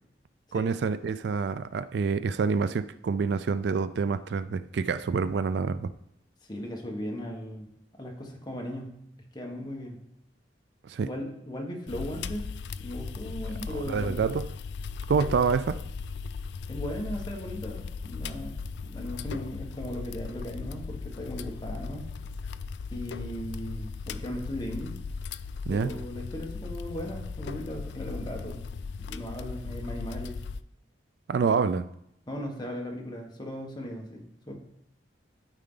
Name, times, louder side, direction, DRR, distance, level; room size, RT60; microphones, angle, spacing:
voice 1, 0.5-5.9 10.8-11.1 13.7-14.5 15.1-15.8 25.7-25.9 31.3-31.8, right 5 dB, 65° right, 14 dB, 0.3 m, -27 dB
voice 2, 6.4-7.7 8.0-10.0 11.0-12.5 12.8-14.1 16.7-22.1 22.9-25.0 25.7-28.6 29.0-30.4 31.4-31.5 32.3-34.6, equal, 25° left, 0 dB, 1.4 m, -37 dB
sound 1, 11.9-30.6, left 5 dB, 70° left, 0.3 m, -37 dB
12.0 x 4.7 x 3.9 m, 0.75 s
head